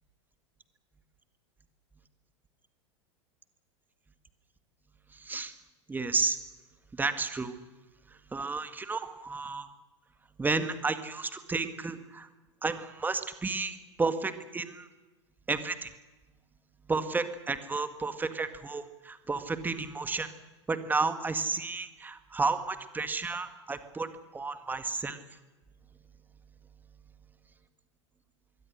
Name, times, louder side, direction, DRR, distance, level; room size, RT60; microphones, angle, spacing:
voice 1, 5.1-5.5 5.9-6.4 6.9-7.6 8.3-9.7 10.4-12.3 12.6-14.9 15.5-15.9 16.9-20.3 20.7-25.2, right 4 dB, 10° right, 10 dB, 2.0 m, -32 dB
26.0 x 22.0 x 6.5 m, 1.2 s
figure-of-eight pair, 85°, 15 cm